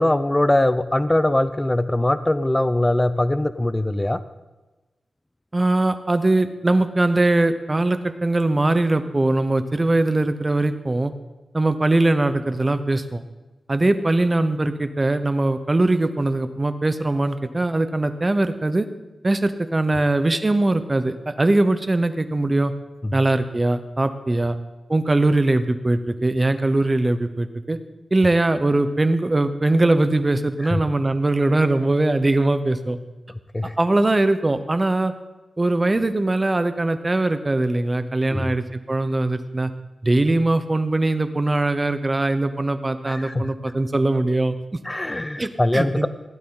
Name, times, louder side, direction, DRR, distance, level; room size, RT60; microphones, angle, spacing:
voice 1, 0.0-4.2 23.0-23.1 30.7-30.8 33.5-33.7 38.3-38.5 43.1-43.5 44.8-46.1, left 1 dB, 15° left, 13 dB, 0.5 m, -21 dB
voice 2, 5.5-11.1 11.5-13.2 13.7-18.9 19.2-22.7 23.1-24.6 24.9-27.8 28.1-33.0 33.8-35.1 35.6-39.7 40.0-44.6 45.4-46.1, right 2 dB, 25° right, 10 dB, 0.8 m, -21 dB
16.5 x 11.5 x 3.9 m, 1.1 s
wide cardioid pair, 125°, 0 cm